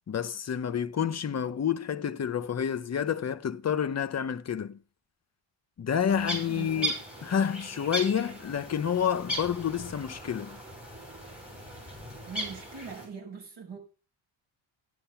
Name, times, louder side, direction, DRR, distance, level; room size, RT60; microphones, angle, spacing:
voice 1, 0.1-4.8 5.8-6.9 7.2-10.6, left 8 dB, 35° left, 0.7 m, -29 dB
sound 1, 6.1-13.1, right 1 dB, 5° right, 5.7 m, -37 dB
voice 2, 6.5-6.9 12.2-13.8, right 5 dB, 60° right, 6.2 m, -42 dB
13.5 x 11.0 x 5.7 m
wide cardioid pair, 180°, 47 cm